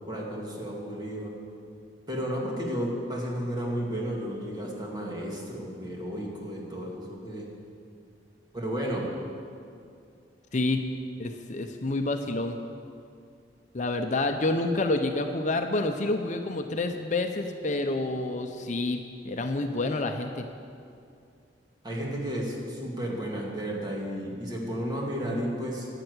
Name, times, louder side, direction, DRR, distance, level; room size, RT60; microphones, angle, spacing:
voice 1, 0.0-1.3 2.1-7.5 8.5-9.1 21.8-25.9, equal, 25° right, -3 dB, 2.4 m, -33 dB
voice 2, 10.5-10.8 11.2-12.6 13.7-19.0 19.2-20.5, left 2 dB, 45° left, 6 dB, 0.7 m, -28 dB
11.5 x 8.9 x 8.1 m, 2.4 s
head